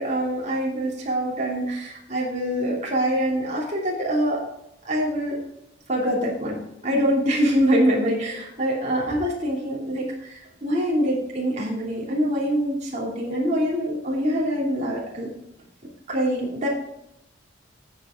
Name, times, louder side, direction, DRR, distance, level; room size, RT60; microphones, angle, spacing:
voice 1, 0.0-4.4 4.8-5.4 5.9-15.3 16.1-16.7, equal, 35° right, -3 dB, 3.0 m, -24 dB
13.5 x 7.6 x 3.8 m, 0.83 s
head